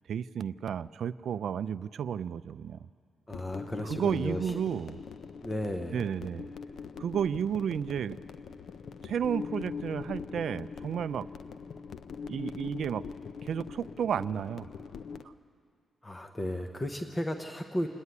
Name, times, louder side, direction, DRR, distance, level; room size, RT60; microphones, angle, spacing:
voice 1, 0.1-2.8 3.8-5.0 5.9-6.5 7.0-8.2 9.0-11.3 12.3-13.0 13.4-14.7, right 8 dB, 65° right, 15 dB, 0.4 m, -32 dB
sound 1, 3.3-15.3, left 5 dB, 65° left, 0.6 m, -42 dB
voice 2, 3.3-4.6 5.4-6.0 16.0-17.9, left 1 dB, 15° left, 4 dB, 0.9 m, -34 dB
28.0 x 9.8 x 9.5 m, 2.2 s
cardioid pair, 135°, 0 cm